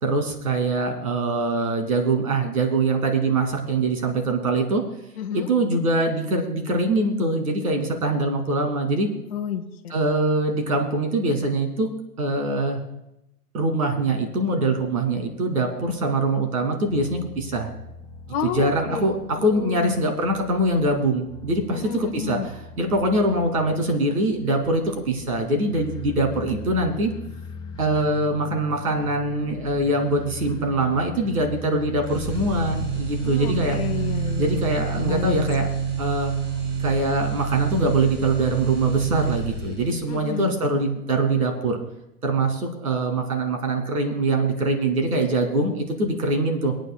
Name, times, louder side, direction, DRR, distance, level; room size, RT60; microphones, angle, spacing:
voice 1, 0.0-4.8 5.3-9.1 9.9-11.9 12.2-12.8 13.5-17.7 18.4-22.4 22.8-27.1 27.8-33.8 34.4-35.7 36.0-36.3 36.8-41.8 42.2-46.7, right 2 dB, 70° right, 3 dB, 2.7 m, -23 dB
voice 2, 5.2-5.5 9.3-9.9 18.3-20.0 21.7-22.5 33.2-34.7 35.0-35.7 40.1-40.6, left 8 dB, 40° left, 2 dB, 0.9 m, -31 dB
sound 1, 16.9-34.5, left 2 dB, 10° left, 1.4 m, -40 dB
sound 2, 32.1-40.0, right 6 dB, 30° right, 2.2 m, -27 dB
26.0 x 9.1 x 2.3 m, 0.87 s
figure-of-eight pair, 120°, 47 cm